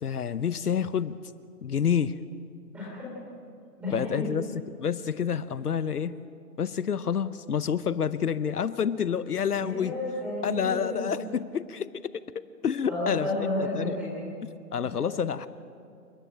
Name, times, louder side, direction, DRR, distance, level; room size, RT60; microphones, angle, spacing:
voice 1, 0.0-1.2 1.6-2.2 3.9-4.5 4.8-6.1 6.6-9.9 10.4-12.2 12.6-14.0 14.7-15.5, left 7 dB, 65° left, 15 dB, 0.9 m, -28 dB
voice 2, 2.7-3.1 3.8-4.3 9.6-11.1 12.9-14.3 14.8-14.9, left 2 dB, 5° right, -8 dB, 4.2 m, -32 dB
29.5 x 10.5 x 8.9 m, 2.4 s
hypercardioid pair, 180°, 48 cm